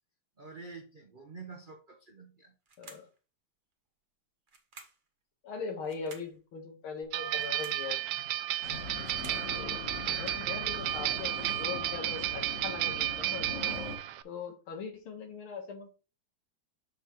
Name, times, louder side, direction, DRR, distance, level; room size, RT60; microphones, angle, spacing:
voice 1, 0.4-2.5, right 4 dB, 70° right, 2 dB, 0.4 m, -48 dB
sound 1, 2.6-3.2 4.5-5.1 5.8-6.3 7.3-7.9 8.7-9.5, right 4 dB, 35° right, 0.9 m, -52 dB
voice 2, 5.4-8.3 9.5-9.8 10.1-11.3 11.6-13.5 14.2-15.9, left 5 dB, 75° left, 4 dB, 2.3 m, -40 dB
sound 2, 7.1-14.2, right 14 dB, 90° right, 1.5 m, -33 dB
sound 3, 8.6-14.0, left 3 dB, 55° left, 2.7 m, -41 dB
6.7 x 6.5 x 3.1 m, 0.33 s
omnidirectional pair, 2.3 m